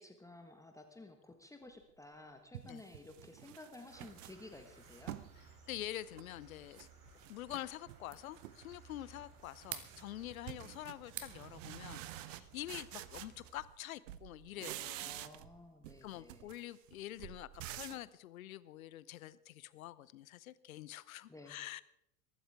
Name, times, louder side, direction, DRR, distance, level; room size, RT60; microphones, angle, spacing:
voice 1, 0.0-5.2 15.0-16.5 21.3-21.6, left 2 dB, 5° left, 5 dB, 1.4 m, -54 dB
sound 1, 1.9-2.0 2.5-5.3 5.8-6.9 7.2-8.0 8.3-8.8 9.1-13.8 14.1-15.6 15.8-18.1, right 15 dB, 55° right, 0.8 m, -49 dB
sound 2, 3.9-13.5, right 4 dB, 70° right, 4.1 m, -61 dB
sound 3, 4.3-12.7, right 10 dB, 30° right, 1.4 m, -54 dB
voice 2, 5.4-6.9 7.3-15.2 16.0-21.8, left 14 dB, 60° left, 19 dB, 0.8 m, -46 dB
23.0 x 12.5 x 3.6 m, 0.77 s
figure-of-eight pair, 80°, 47 cm